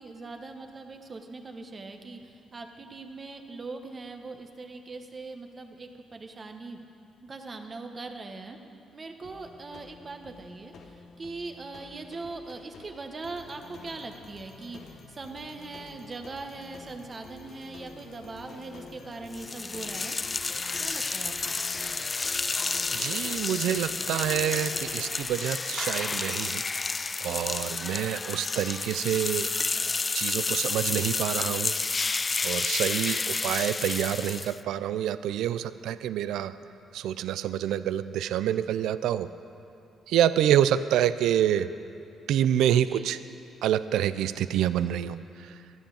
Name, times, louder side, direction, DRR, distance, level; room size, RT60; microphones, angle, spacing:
voice 1, 0.0-6.8 7.2-8.6 8.9-20.2 20.8-21.6 42.8-43.1, right 3 dB, 35° right, 5 dB, 1.2 m, -41 dB
sound 1, 9.2-25.2, left 5 dB, 65° left, 0.9 m, -48 dB
sound 2, 19.3-34.6, left 4 dB, 30° left, 0.3 m, -30 dB
voice 2, 22.9-26.6 27.2-29.5 30.1-31.7 32.4-36.6 36.9-39.3 40.1-41.7 42.3-43.2 43.6-45.5, right 11 dB, 85° right, 14 dB, 0.4 m, -27 dB
13.5 x 9.1 x 7.1 m, 2.8 s
cardioid pair, 90°, 0 cm